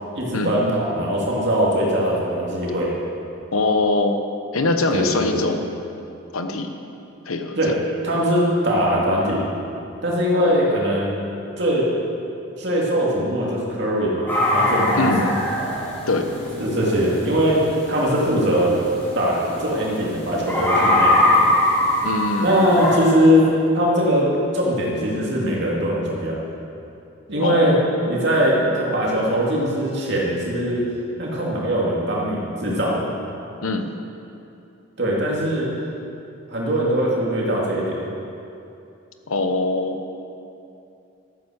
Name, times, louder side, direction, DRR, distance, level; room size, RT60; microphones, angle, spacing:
voice 1, 0.1-2.9 4.9-5.2 7.6-7.8 8.0-9.4 10.0-11.1 11.6-11.9 12.6-15.1 16.5-17.6 17.9-18.8 19.1-21.5 22.4-23.5 23.7-26.4 27.3-27.8 28.0-30.9 31.2-33.1 35.0-35.7 36.5-38.0, equal, 55° right, -4 dB, 2.8 m, -21 dB
voice 2, 3.5-4.2 4.5-5.6 6.3-6.7 7.3-7.7 10.3-10.6 15.0-15.3 16.1-16.3 22.0-22.8 27.4-27.8 33.6-33.9 39.3-40.0, left 2 dB, 90° left, 6 dB, 1.1 m, -22 dB
sound 1, 14.3-23.0, left 1 dB, 10° left, 3.6 m, -23 dB
13.0 x 9.7 x 6.5 m, 2.7 s
head